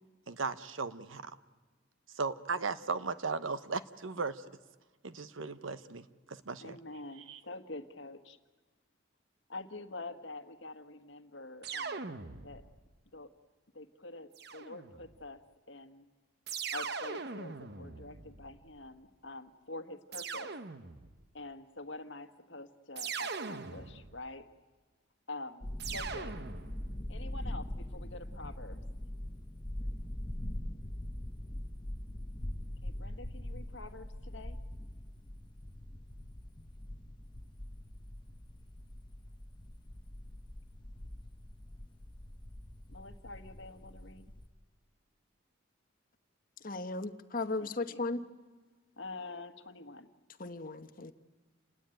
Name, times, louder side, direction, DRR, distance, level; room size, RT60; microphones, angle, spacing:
voice 1, 0.3-1.3 2.1-4.4 5.0-6.8 7.3-7.4, right 4 dB, 80° right, 13 dB, 1.1 m, -36 dB
voice 2, 6.6-8.4 9.5-12.6 13.1-13.3 13.7-16.1 16.7-20.5 21.3-24.5 25.3-25.6 25.9-26.4 27.1-28.8 32.8-34.6 42.9-44.3 47.6-48.0 49.0-50.1, left 2 dB, 65° left, 9 dB, 1.6 m, -46 dB
sound 1, 11.6-12.8 14.4-15.2 16.5-18.8 20.1-21.2 23.0-24.3 25.8-27.0, right 5 dB, 55° right, 1.0 m, -41 dB
sound 2, 25.6-44.5, left 1 dB, 25° left, 1.0 m, -43 dB
voice 3, 46.6-48.2 50.4-51.1, left 3 dB, 45° left, 9 dB, 1.1 m, -36 dB
29.0 x 19.5 x 9.1 m, 1.4 s
head